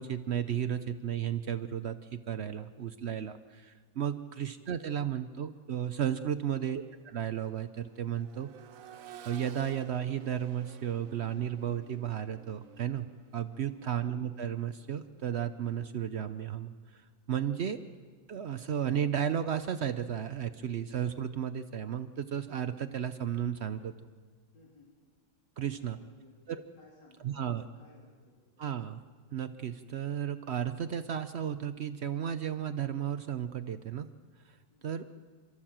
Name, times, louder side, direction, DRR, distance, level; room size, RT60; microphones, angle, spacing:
voice 1, 0.0-8.5 9.2-13.1 13.3-17.8 18.3-23.9 25.6-26.0 26.5-26.6 27.2-27.6 28.6-29.0 29.3-34.1 34.4-34.6 34.8-35.0, right 9 dB, 85° right, 10 dB, 0.5 m, -34 dB
Accelerating revving vroom, 5.4-5.6 6.0-15.9 17.6-17.7, right 10 dB, 60° right, 1.0 m, -54 dB
voice 2, 24.5-24.9 25.6-26.3 26.7-28.6 34.7-35.0, left 3 dB, 65° left, -3 dB, 3.9 m, -60 dB
28.5 x 14.0 x 7.4 m, 1.5 s
omnidirectional pair, 2.1 m